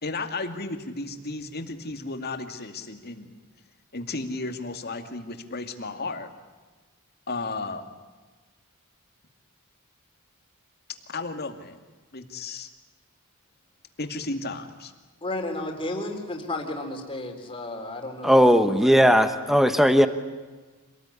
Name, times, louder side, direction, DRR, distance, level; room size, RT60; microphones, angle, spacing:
voice 1, 0.0-3.3 3.9-6.3 7.3-7.9 11.1-11.8 12.1-12.7 14.0-14.9, left 3 dB, 45° left, 6 dB, 2.4 m, -34 dB
voice 2, 15.2-19.2, left 2 dB, 25° left, 3 dB, 3.9 m, -33 dB
voice 3, 18.2-20.1, equal, ahead, 9 dB, 1.2 m, -17 dB
26.5 x 19.0 x 9.9 m, 1.3 s
head